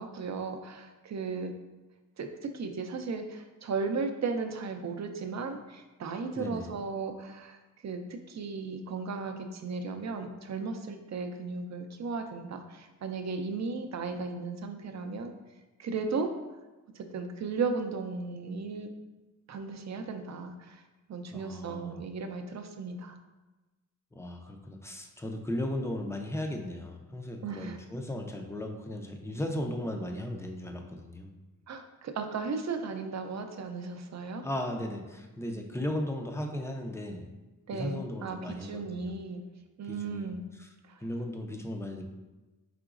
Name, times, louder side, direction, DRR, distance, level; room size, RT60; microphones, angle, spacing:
voice 1, 0.0-1.5 2.2-2.3 2.5-7.6 7.8-15.3 15.8-16.3 16.9-18.9 19.5-20.8 21.1-23.2 27.4-27.8 31.7-34.4 37.7-39.4 39.8-40.4 40.9-41.0, right 4 dB, 55° right, 6 dB, 0.5 m, -35 dB
voice 2, 6.4-6.7 21.3-22.0 24.1-31.3 34.4-37.3 37.7-39.2 39.9-40.7 41.0-42.0, left 1 dB, 10° left, 3 dB, 0.4 m, -36 dB
4.9 x 3.7 x 2.4 m, 1.1 s
wide cardioid pair, 150°, 34 cm